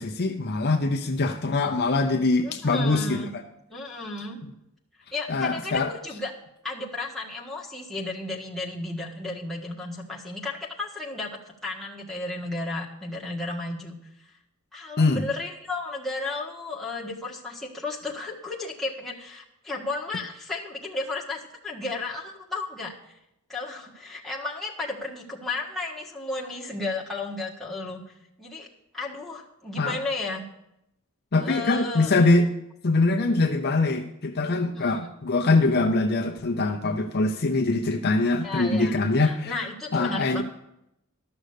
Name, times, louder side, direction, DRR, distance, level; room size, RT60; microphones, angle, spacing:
voice 1, 0.0-3.2 5.3-5.9 15.0-15.2 29.8-30.0 31.3-32.5 32.8-39.6 39.9-40.4, left 3 dB, 45° left, 4 dB, 0.7 m, -23 dB
voice 2, 2.4-3.3 3.7-4.4 5.1-6.3 6.6-13.9 14.7-22.9 23.5-28.0 28.4-28.7 28.9-30.5 31.4-32.1 34.7-35.1 38.4-38.9 39.2-40.4, left 2 dB, ahead, -4 dB, 1.6 m, -33 dB
12.5 x 6.4 x 6.6 m, 0.82 s
head